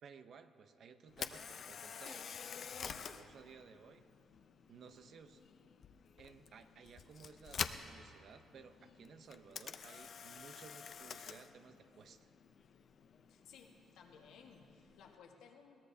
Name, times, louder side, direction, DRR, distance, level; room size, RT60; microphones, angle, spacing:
voice 1, 0.0-2.3 2.8-4.1 4.7-5.4 6.2-12.3, right 6 dB, 60° right, 9 dB, 0.7 m, -57 dB
Camera, 1.1-15.2, left 7 dB, 55° left, 0.6 m, -48 dB
voice 2, 13.3-15.8, left 6 dB, 85° left, 1 dB, 1.5 m, -59 dB
21.5 x 17.5 x 2.8 m, 2.7 s
cardioid pair, 90°, 0 cm